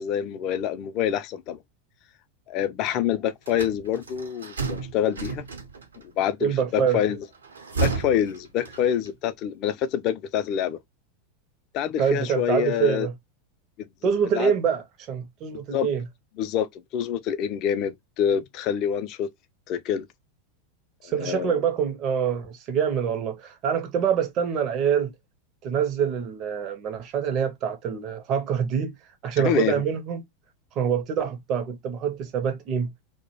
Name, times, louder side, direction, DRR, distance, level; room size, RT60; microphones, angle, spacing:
voice 1, 0.0-1.6 2.5-5.5 6.2-7.2 7.8-10.8 11.7-13.1 14.3-14.5 15.5-15.9 16.4-16.7 16.9-19.3 19.7-20.1 21.0-21.6 29.4-29.7, left 9 dB, 50° left, 0.3 m, -26 dB
sound 1, 3.5-6.0 7.3-9.1, right 4 dB, 85° right, 0.6 m, -31 dB
voice 2, 6.4-7.0 12.0-13.1 14.0-16.1 21.0-25.1 25.6-29.0 29.2-30.2 30.7-32.9, right 7 dB, 45° right, 0.5 m, -25 dB
2.2 x 2.0 x 2.9 m
hypercardioid pair, 90°, 0 cm